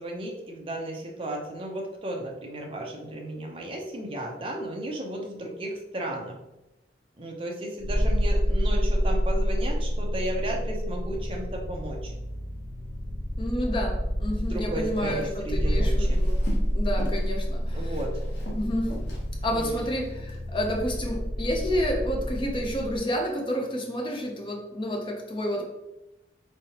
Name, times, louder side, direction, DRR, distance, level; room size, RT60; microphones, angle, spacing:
voice 1, 0.0-6.4 7.2-12.1 14.3-16.2 17.7-18.1 19.5-19.9, right 1 dB, 30° right, 0 dB, 0.6 m, -34 dB
sound 1, 7.8-23.0, equal, 10° left, 1.4 m, -28 dB
voice 2, 13.4-16.4 16.7-17.9 18.5-19.0 19.4-25.6, equal, 25° left, 1 dB, 0.6 m, -30 dB
Walk footsteps, 14.8-16.7 17.0-17.3 17.6-20.4 20.9-21.2, equal, 85° left, 1.0 m, -40 dB
3.6 x 3.3 x 2.8 m, 0.96 s
head